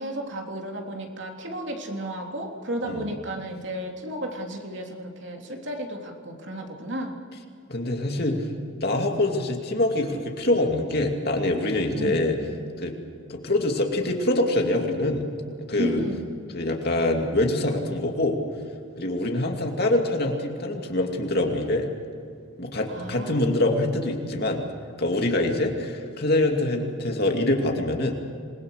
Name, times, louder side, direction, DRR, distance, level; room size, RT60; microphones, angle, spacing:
voice 1, 0.0-7.1 11.9-12.3 15.8-16.2 22.9-23.6, equal, 55° right, 1 dB, 3.3 m, -33 dB
voice 2, 7.7-8.5 8.8-12.4 12.8-12.9 13.3-15.3 15.7-16.0 16.5-18.4 19.0-21.9 22.6-24.6 25.0-28.2, left 1 dB, 50° left, 2 dB, 2.6 m, -24 dB
27.5 x 21.0 x 6.6 m, 2.3 s
head